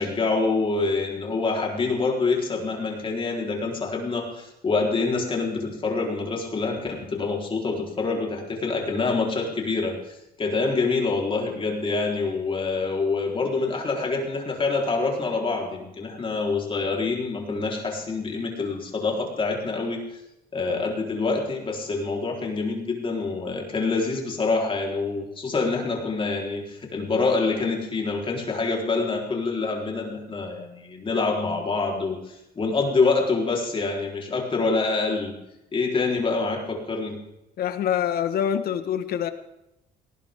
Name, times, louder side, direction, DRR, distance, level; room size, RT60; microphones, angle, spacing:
voice 1, 0.0-20.0 20.5-35.4 35.7-37.2, left 3 dB, 30° left, 0 dB, 4.3 m, -26 dB
voice 2, 37.6-39.3, left 9 dB, 65° left, 10 dB, 1.6 m, -25 dB
19.0 x 19.0 x 3.8 m, 0.88 s
cardioid pair, 110°, 17 cm